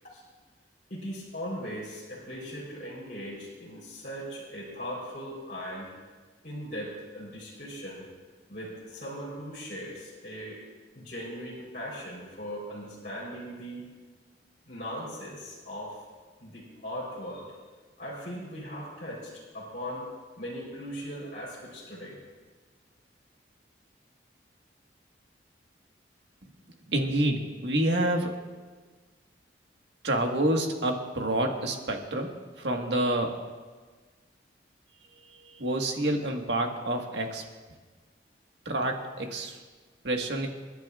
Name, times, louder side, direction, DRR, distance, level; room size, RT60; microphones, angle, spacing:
voice 1, 0.9-5.9 6.4-8.0 8.5-10.6 11.0-13.9 14.7-16.0 16.4-17.6 18.0-20.1 20.4-22.2, equal, 50° left, -7 dB, 3.7 m, -39 dB
voice 2, 26.9-28.3 30.0-33.4 35.3-37.4 38.6-39.6 40.0-40.5, right 1 dB, 70° right, 2 dB, 1.5 m, -28 dB
28.5 x 10.5 x 2.4 m, 1.4 s
head